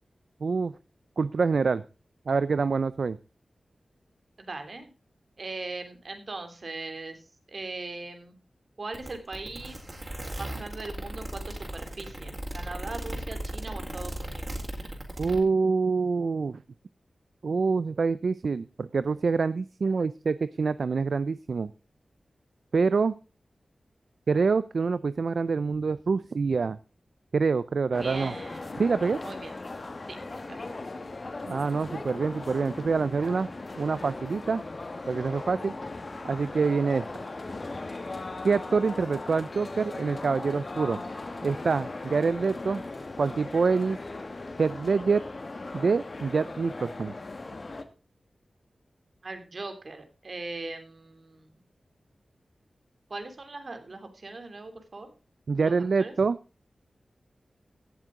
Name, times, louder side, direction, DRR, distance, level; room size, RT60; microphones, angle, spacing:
voice 1, 0.4-0.7 1.2-1.8 2.3-3.2 15.2-16.6 17.4-21.7 22.7-23.1 24.3-26.8 27.3-28.3 28.8-29.2 31.4-33.5 33.8-34.6 35.1-35.7 36.2-37.1 38.4-41.0 41.4-42.8 43.2-44.0 44.6-45.2 45.7-47.1 55.5-56.4, right 4 dB, 70° right, 15 dB, 0.5 m, -26 dB
voice 2, 4.4-4.9 5.4-8.3 8.8-9.8 10.4-14.5 28.0-28.8 29.2-29.5 30.1-30.6 49.2-51.5 53.1-55.1 55.6-56.1, right 3 dB, 55° right, 7 dB, 2.9 m, -40 dB
sound 1, 8.9-15.4, right 1 dB, 30° right, 4.2 m, -36 dB
sound 2, 27.9-47.8, left 2 dB, 45° left, 1.6 m, -38 dB
17.0 x 7.5 x 3.7 m, 0.32 s
wide cardioid pair, 90°, 0 cm